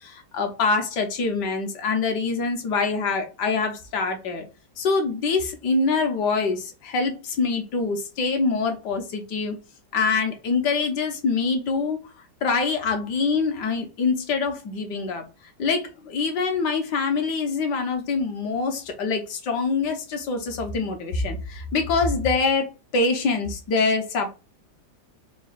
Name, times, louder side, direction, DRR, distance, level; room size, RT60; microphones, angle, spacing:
voice 1, 0.0-4.4 4.8-9.6 9.9-12.0 12.4-15.2 15.6-22.7 22.9-24.3, left 4 dB, 65° left, 1.3 m, -25 dB
4.2 x 2.3 x 3.9 m
omnidirectional pair, 2.2 m